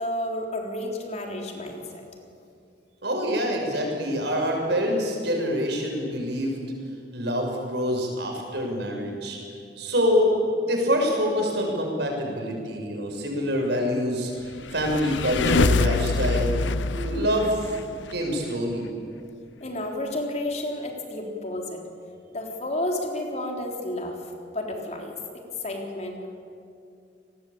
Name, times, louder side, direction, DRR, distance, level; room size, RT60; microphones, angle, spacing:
voice 1, 0.0-2.0 19.6-21.8 22.3-24.2 24.5-26.3, left 1 dB, 40° left, 1 dB, 3.9 m, -31 dB
voice 2, 3.0-6.6 7.1-9.4 9.8-16.6 16.9-17.7 18.1-18.9, equal, 65° right, 1 dB, 6.5 m, -26 dB
sound 1, 14.5-18.1, left 3 dB, 80° left, 0.7 m, -25 dB
28.5 x 20.0 x 8.7 m, 2.4 s
head